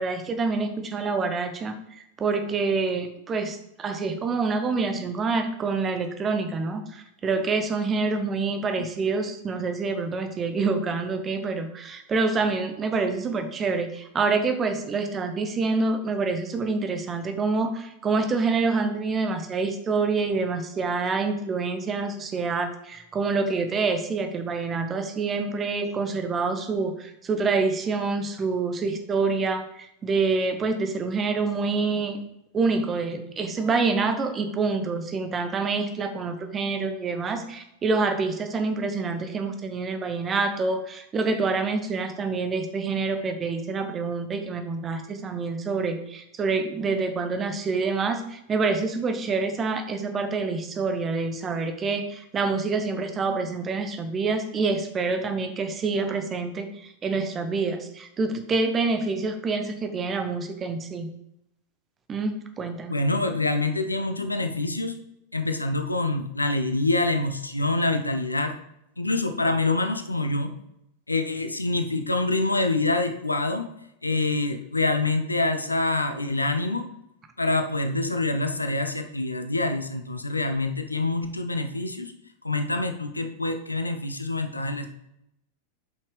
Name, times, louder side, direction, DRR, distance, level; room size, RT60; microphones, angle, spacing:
voice 1, 0.0-32.2 32.5-61.1 62.1-62.9, right 4 dB, 25° right, 7 dB, 1.0 m, -27 dB
voice 2, 62.9-65.0 65.3-68.5 69.0-70.5 71.1-73.7 74.0-76.8 77.4-82.1 82.4-84.9, left 2 dB, 80° left, 7 dB, 0.7 m, -26 dB
8.2 x 5.8 x 3.3 m, 0.81 s
figure-of-eight pair, 90°, 0 cm